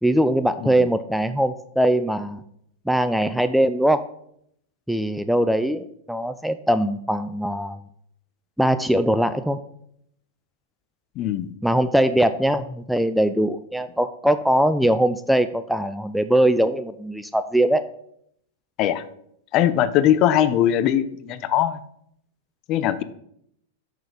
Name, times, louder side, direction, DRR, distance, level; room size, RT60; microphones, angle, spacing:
voice 1, 0.0-2.4 2.9-4.0 4.9-7.8 8.6-9.6 11.6-17.9, right 1 dB, ahead, 11 dB, 0.4 m, -21 dB
voice 2, 11.2-11.5 18.8-19.0 19.5-21.8 22.7-23.0, left 11 dB, 45° left, 14 dB, 0.6 m, -21 dB
6.4 x 6.3 x 5.2 m, 0.72 s
hypercardioid pair, 105°, 0 cm